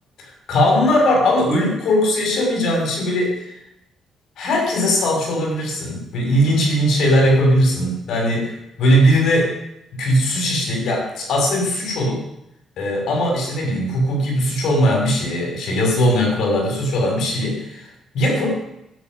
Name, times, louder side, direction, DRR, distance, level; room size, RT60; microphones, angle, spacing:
voice 1, 0.2-3.4 4.4-8.5 8.8-9.5 9.9-12.2 12.8-17.9 18.1-18.6, equal, 75° left, 0 dB, 6.1 m, -19 dB
11.5 x 7.3 x 9.4 m, 0.83 s
cardioid pair, 90°, 0 cm